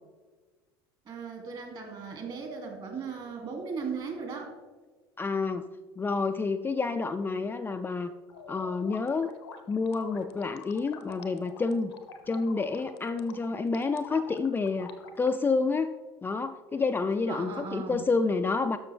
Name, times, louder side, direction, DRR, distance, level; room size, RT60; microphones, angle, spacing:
voice 1, 1.1-4.5 17.3-18.0, right 5 dB, 40° right, 2 dB, 2.6 m, -37 dB
voice 2, 5.2-5.6 6.0-8.1 8.5-9.3 9.7-11.9 12.3-15.9 16.2-18.8, left 4 dB, 15° left, 7 dB, 0.4 m, -29 dB
sound 1, 8.3-15.3, left 5 dB, 80° left, 0.8 m, -47 dB
12.5 x 6.3 x 3.4 m, 1.4 s
hypercardioid pair, 75°, 13 cm